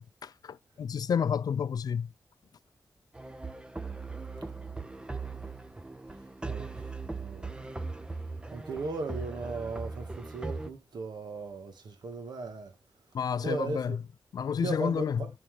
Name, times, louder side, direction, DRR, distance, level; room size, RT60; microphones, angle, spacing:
voice 1, 0.0-2.1 13.1-14.0 14.3-15.2, left 7 dB, 65° left, 0.4 m, -30 dB
sound 1, 3.1-10.7, right 3 dB, 15° right, 0.6 m, -39 dB
voice 2, 6.4-7.8 8.5-12.7 13.4-14.0 14.6-15.3, right 4 dB, 85° right, 1.8 m, -37 dB
11.5 x 4.4 x 3.4 m
wide cardioid pair, 175°, 7 cm